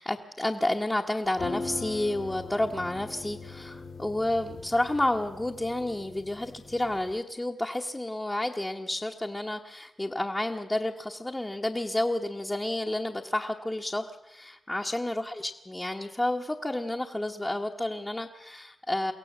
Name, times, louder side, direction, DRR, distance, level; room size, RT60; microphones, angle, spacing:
voice 1, 0.0-19.1, left 1 dB, 15° left, -1 dB, 1.1 m, -30 dB
sound 1, 1.3-7.2, left 4 dB, 70° left, 2.3 m, -41 dB
23.5 x 17.0 x 7.2 m, 0.91 s
wide cardioid pair, 110°, 0 cm